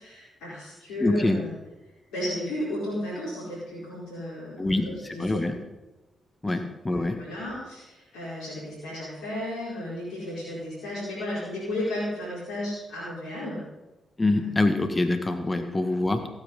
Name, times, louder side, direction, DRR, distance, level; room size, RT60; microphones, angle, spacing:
voice 1, 0.0-1.5 2.1-5.5 6.9-13.6 14.3-14.5 15.6-15.7, left 1 dB, 80° left, -10 dB, 4.9 m, -34 dB
voice 2, 1.0-1.4 4.6-5.6 6.4-7.2 14.2-16.3, left 2 dB, 25° left, 7 dB, 1.6 m, -25 dB
15.0 x 9.3 x 5.5 m, 1.1 s
hypercardioid pair, 40°, 0 cm